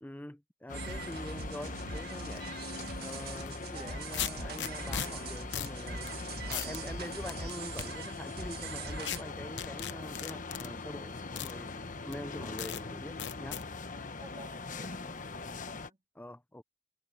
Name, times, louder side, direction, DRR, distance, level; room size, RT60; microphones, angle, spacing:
voice 1, 0.0-2.5 3.0-13.6 16.1-16.6, left 1 dB, 10° left, 0.7 m, -45 dB
sound 1, 0.7-15.9, left 3 dB, 45° left, 1.2 m, -42 dB
sound 2, 0.7-9.2, right 4 dB, 60° right, 1.8 m, -43 dB
sound 3, 3.4-3.5 4.1-5.1 5.5-5.8 6.1-6.2 6.5-6.8 7.3-7.9 9.0-9.2 9.6-10.7 11.4-11.5 12.1-12.2 12.6-12.8 13.2-13.6, left 10 dB, 75° left, 0.9 m, -36 dB
voice 2, 3.7-4.0 14.2-16.0, right 4 dB, 30° right, 3.1 m, -53 dB
head